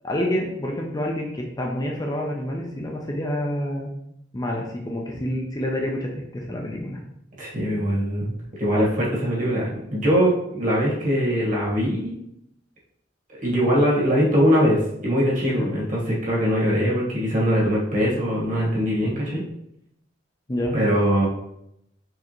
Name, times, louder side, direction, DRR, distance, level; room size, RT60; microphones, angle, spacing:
voice 1, 0.0-3.9 4.3-7.0 15.5-15.7 20.5-20.8, left 1 dB, 20° left, 0 dB, 0.5 m, -28 dB
voice 2, 7.4-8.3 8.6-12.1 13.3-19.4 20.7-21.3, equal, 45° right, -5 dB, 1.6 m, -22 dB
4.7 x 3.4 x 3.0 m, 0.78 s
head